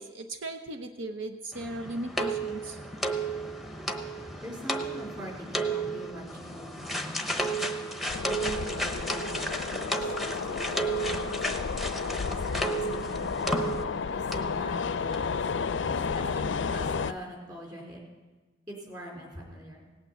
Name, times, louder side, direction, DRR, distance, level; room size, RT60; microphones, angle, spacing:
voice 1, 0.0-2.8, right 1 dB, 80° right, 6 dB, 0.9 m, -37 dB
sound 1, 1.5-14.1 14.3-14.5 15.1-15.2 15.5-15.6, right 2 dB, ahead, 0.8 m, -33 dB
voice 2, 4.4-7.8 8.3-11.8 12.3-13.8 14.1-18.0 18.7-19.9, equal, 20° right, -2 dB, 3.9 m, -43 dB
sound 2, 8.1-17.1, left 5 dB, 70° left, 0.5 m, -32 dB
18.0 x 8.9 x 7.9 m, 1.2 s
head